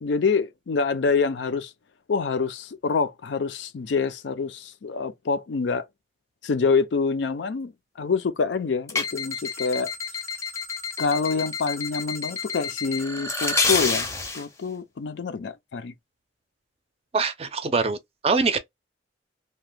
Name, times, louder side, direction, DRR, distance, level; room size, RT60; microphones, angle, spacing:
voice 1, 0.0-1.7 2.1-5.9 6.4-7.7 8.0-9.9 11.0-15.9, left 4 dB, 80° left, 0.4 m, -26 dB
sound 1, 8.9-14.4, left 4 dB, 15° left, 0.5 m, -29 dB
voice 2, 17.1-18.0 18.2-18.6, right 4 dB, 35° right, 0.4 m, -23 dB
2.8 x 2.2 x 3.2 m
head